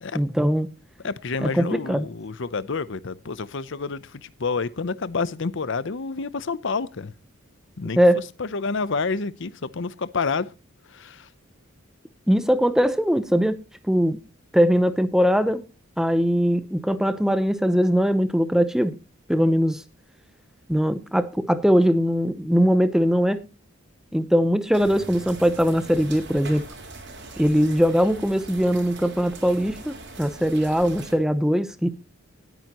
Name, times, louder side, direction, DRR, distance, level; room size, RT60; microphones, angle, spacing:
voice 1, 0.1-0.7 1.4-2.1 7.9-8.2 12.3-14.2 14.5-15.6 16.0-18.9 19.3-19.8 20.7-23.4 24.1-26.6 27.4-31.9, equal, 5° right, 0.8 m, -21 dB
voice 2, 1.0-7.1 7.8-10.5 10.9-11.3, left 4 dB, 60° left, 0.7 m, -29 dB
sound 1, 24.7-31.1, right 3 dB, 55° right, 3.6 m, -41 dB
19.0 x 9.1 x 3.0 m
head